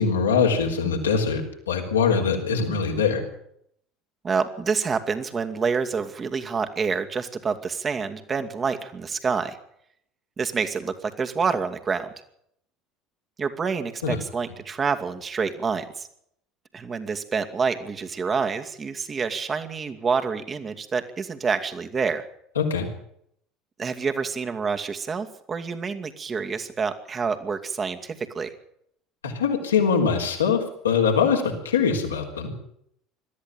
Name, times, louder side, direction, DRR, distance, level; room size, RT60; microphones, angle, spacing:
voice 1, 0.0-3.2 14.0-14.2 22.6-22.9 29.2-32.5, left 6 dB, 80° left, 2 dB, 3.9 m, -23 dB
voice 2, 4.2-9.6 10.4-12.1 13.4-16.1 16.7-22.3 23.8-28.5, right 5 dB, 30° right, 7 dB, 2.4 m, -27 dB
21.5 x 13.5 x 9.2 m, 0.71 s
figure-of-eight pair, 65°, 0 cm